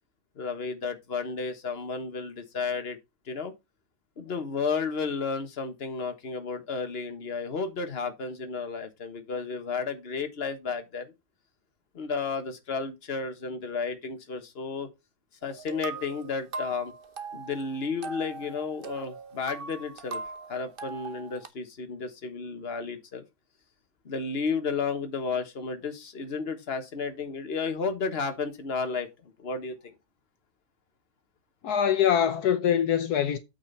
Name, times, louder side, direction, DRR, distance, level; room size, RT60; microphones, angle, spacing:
voice 1, 0.4-3.0 3.3-3.5 4.2-11.1 11.9-14.9 15.4-16.9 17.3-20.2 20.5-23.2 24.0-29.1 29.4-29.8, left 4 dB, 40° left, 1.6 m, -32 dB
sound 1, 15.4-21.5, right 4 dB, 45° right, 0.9 m, -40 dB
voice 2, 31.6-33.4, left 9 dB, 75° left, 1.3 m, -23 dB
8.7 x 5.9 x 4.1 m
omnidirectional pair, 1.7 m